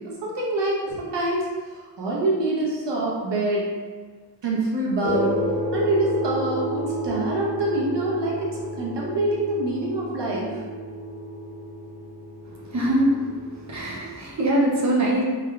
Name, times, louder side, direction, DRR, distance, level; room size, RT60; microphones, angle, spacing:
voice 1, 0.0-3.6 4.4-5.4 5.7-8.5 8.8-10.6 13.8-13.9, right 2 dB, 85° right, -4 dB, 0.9 m, -25 dB
sound 1, 5.0-13.8, equal, 50° left, 1.0 m, -31 dB
voice 2, 12.6-13.3 13.7-15.2, right 1 dB, 40° right, -4 dB, 0.7 m, -22 dB
3.5 x 2.2 x 3.5 m, 1.5 s
wide cardioid pair, 105°, 42 cm